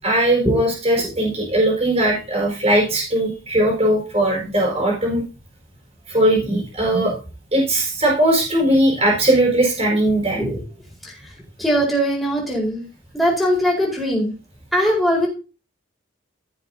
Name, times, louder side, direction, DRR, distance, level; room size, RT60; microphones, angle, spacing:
voice 1, 0.0-5.2 6.1-7.1 7.5-10.4, right 1 dB, 35° right, -2 dB, 4.8 m, -19 dB
voice 2, 11.6-12.8 13.1-14.3 14.7-15.3, equal, ahead, -4 dB, 4.5 m, -20 dB
16.0 x 7.1 x 2.8 m, 0.31 s
head